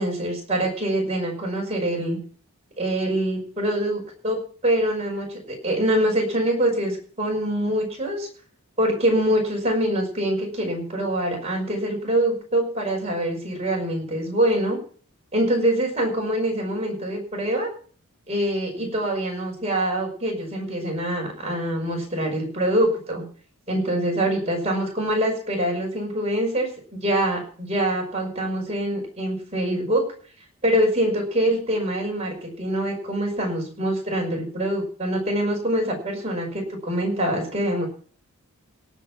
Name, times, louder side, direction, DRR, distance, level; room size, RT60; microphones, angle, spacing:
voice 1, 0.0-2.2 2.8-8.3 8.8-14.8 15.3-17.7 18.3-23.2 23.7-30.0 30.6-37.9, right 1 dB, 30° right, 0 dB, 5.7 m, -24 dB
18.0 x 6.1 x 7.4 m, 0.43 s
head